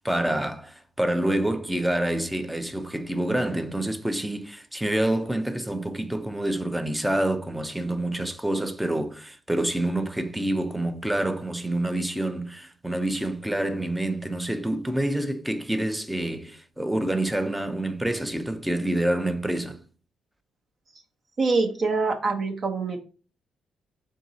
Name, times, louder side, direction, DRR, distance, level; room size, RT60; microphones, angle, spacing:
voice 1, 0.0-19.8, right 1 dB, 5° right, 0.6 m, -27 dB
voice 2, 21.4-23.0, right 3 dB, 45° right, 0.8 m, -25 dB
3.8 x 2.8 x 4.0 m
cardioid pair, 90°, 0 cm